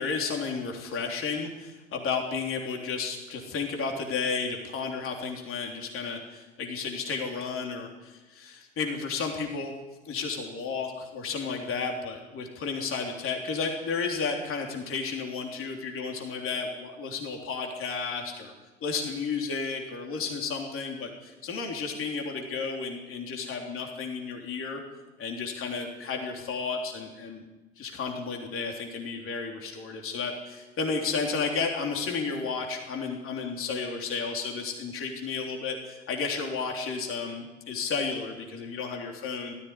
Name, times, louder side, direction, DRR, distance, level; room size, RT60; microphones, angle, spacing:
voice 1, 0.0-9.7 10.1-18.5 18.8-24.8 25.2-27.5 27.8-39.5, left 5 dB, 35° left, 2 dB, 3.5 m, -32 dB
18.5 x 14.5 x 9.8 m, 1.2 s
hypercardioid pair, 80°, 36 cm